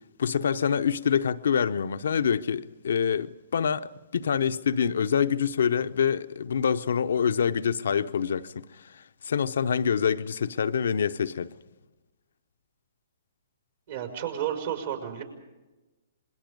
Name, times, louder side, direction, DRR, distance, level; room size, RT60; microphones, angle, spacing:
voice 1, 0.2-11.5, left 7 dB, 70° left, 0.8 m, -26 dB
voice 2, 13.9-15.2, right 10 dB, 60° right, 5.4 m, -32 dB
27.0 x 21.5 x 5.3 m
hypercardioid pair, 130°, 0 cm